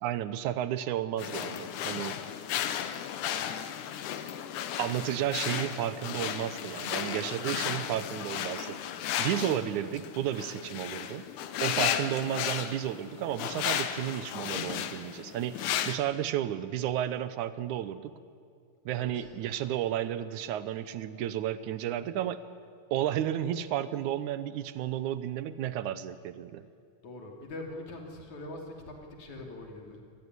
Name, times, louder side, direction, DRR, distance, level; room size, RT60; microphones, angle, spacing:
voice 1, 0.0-2.2 4.8-8.9 9.2-11.2 11.6-18.1 18.9-22.4 22.9-26.7, right 11 dB, 80° right, 14 dB, 2.2 m, -32 dB
sound 1, 1.2-16.0, left 10 dB, 85° left, 2.5 m, -34 dB
voice 2, 18.9-19.3 27.0-30.0, left 2 dB, 65° left, 2 dB, 4.3 m, -43 dB
26.0 x 18.0 x 9.7 m, 2.2 s
omnidirectional pair, 3.5 m